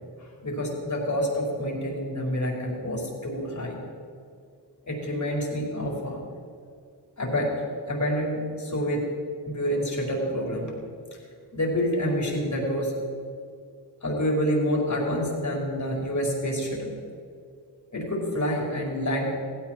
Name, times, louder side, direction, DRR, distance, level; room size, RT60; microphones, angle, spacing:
voice 1, 0.2-3.8 4.9-6.2 7.2-7.5 7.9-9.1 9.4-10.7 11.5-12.9 14.0-17.0 17.9-19.3, equal, 40° left, -2 dB, 4.9 m, -27 dB
17.0 x 16.0 x 4.6 m, 2.3 s
cardioid pair, 70°, 45 cm